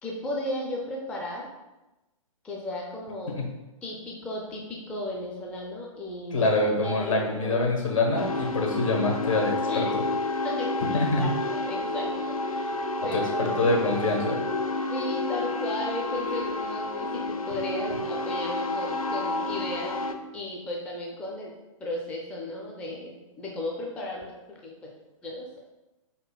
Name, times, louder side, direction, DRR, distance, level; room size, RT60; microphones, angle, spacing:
voice 1, 0.0-1.5 2.4-3.4 3.8-6.5 6.8-7.6 9.7-9.9 10.4-10.7 11.2-12.7 13.0-13.7 14.8-20.0 20.3-21.5 21.8-24.9 25.2-25.5, left 1 dB, 5° left, -2 dB, 0.4 m, -35 dB
voice 2, 6.3-9.9 10.9-11.3 13.4-14.4, left 2 dB, 65° left, 0 dB, 1.2 m, -25 dB
sound 1, 8.2-20.1, left 2 dB, 85° left, 0.4 m, -30 dB
4.8 x 4.2 x 2.2 m, 1.0 s
figure-of-eight pair, 115°, 18 cm